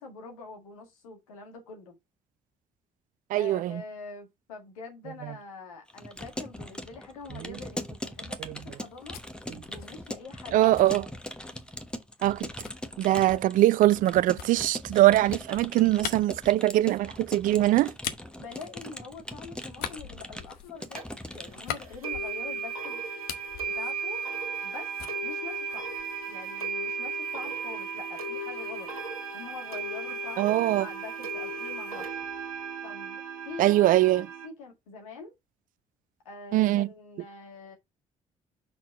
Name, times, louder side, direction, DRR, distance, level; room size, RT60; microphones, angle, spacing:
voice 1, 0.0-1.9 3.3-9.2 9.7-10.8 18.4-21.1 21.3-23.0 23.7-24.2 24.6-24.9 25.2-25.9 26.3-28.9 29.3-32.2 32.8-35.3 36.3-37.8, left 4 dB, 75° left, 1.8 m, -44 dB
voice 2, 3.3-3.8 7.3-7.5 8.4-8.6 10.5-11.1 12.2-12.5 13.0-17.9 30.4-30.9 33.6-34.3 36.5-36.9, right 15 dB, 50° right, 0.4 m, -22 dB
Keyboard (musical) / Computer keyboard, 5.9-22.0, left 1 dB, 5° left, 1.1 m, -41 dB
sound 1, 8.7-11.7 12.6-19.3 19.7-22.7 23.0-24.7 25.0-26.3, left 10 dB, 60° left, 0.9 m, -42 dB
sound 2, 20.9-21.0 22.0-34.5, right 4 dB, 85° right, 1.2 m, -35 dB
6.0 x 4.5 x 4.0 m
figure-of-eight pair, 50°, 18 cm